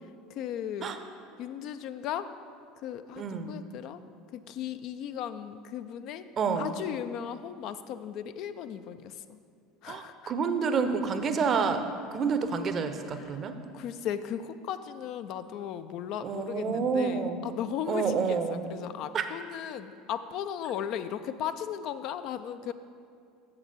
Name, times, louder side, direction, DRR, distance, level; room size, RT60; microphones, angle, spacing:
voice 1, 0.3-0.9 1.4-2.3 2.8-4.0 4.3-6.3 6.6-9.4 9.8-10.3 13.1-13.4 13.7-22.7, left 9 dB, 50° left, 11 dB, 0.3 m, -36 dB
voice 2, 3.2-3.6 6.4-6.7 9.9-11.8 12.1-13.5 16.2-17.5 17.9-18.6 19.1-19.2, right 5 dB, 35° right, 8 dB, 0.6 m, -28 dB
7.2 x 6.6 x 5.4 m, 2.3 s
figure-of-eight pair, 70°, 0 cm